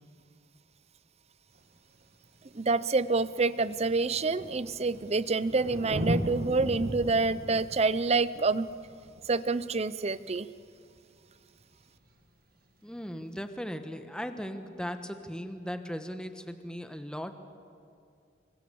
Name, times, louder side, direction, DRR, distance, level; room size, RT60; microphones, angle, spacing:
Thunder, 1.6-1.7 2.6-2.7 2.9-10.3 11.9-12.0, equal, 50° right, 2.1 m, -37 dB
voice 1, 2.5-8.7 9.2-10.5, right 3 dB, 35° right, 16 dB, 0.6 m, -27 dB
voice 2, 12.8-17.3, equal, 5° left, 7 dB, 1.3 m, -38 dB
28.0 x 24.0 x 7.0 m, 2.4 s
head